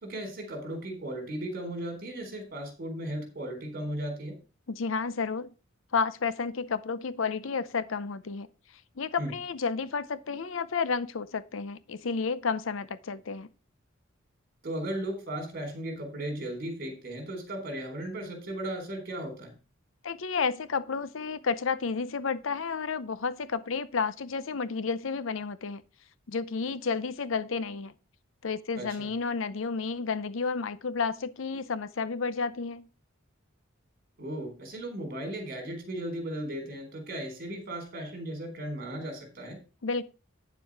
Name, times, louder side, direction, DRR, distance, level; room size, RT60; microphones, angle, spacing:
voice 1, 0.0-4.4 9.2-9.3 14.6-19.5 28.7-29.1 34.2-39.6, right 1 dB, 45° right, 3.8 m, -36 dB
voice 2, 4.7-5.5 5.9-8.5 9.0-13.5 20.0-25.8 26.3-27.9 28.4-32.9 39.8-40.0, left 5 dB, 70° left, 0.6 m, -31 dB
9.2 x 7.1 x 4.7 m
head